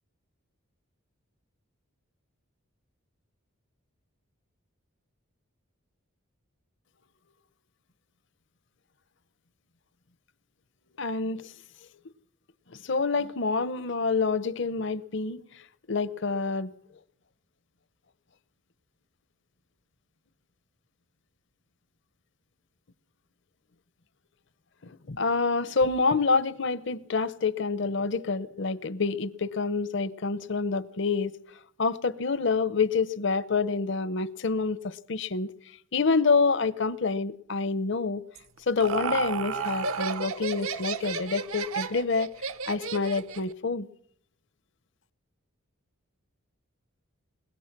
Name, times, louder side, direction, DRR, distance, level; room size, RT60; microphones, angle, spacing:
voice 1, 11.0-11.5 12.7-15.4 15.9-16.7 24.8-31.4 31.8-35.5 35.9-38.2 38.7-42.3 42.7-43.9, left 4 dB, 55° left, 0.7 m, -27 dB
Laughter, 38.4-43.5, right 5 dB, 85° right, 1.1 m, -33 dB
21.5 x 21.0 x 6.0 m
head